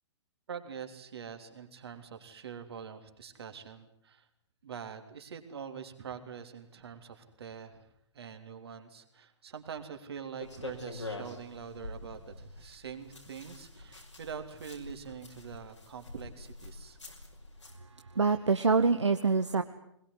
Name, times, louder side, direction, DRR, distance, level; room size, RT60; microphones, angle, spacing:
voice 1, 0.5-4.3 4.6-7.9 8.1-17.0, right 7 dB, 60° right, 6 dB, 3.3 m, -44 dB
sound 1, 10.4-17.8, left 2 dB, 85° left, 5.7 m, -46 dB
voice 2, 17.8-19.6, right 4 dB, 75° right, 8 dB, 1.2 m, -26 dB
21.5 x 21.0 x 9.6 m, 0.75 s
figure-of-eight pair, 115°, 15 cm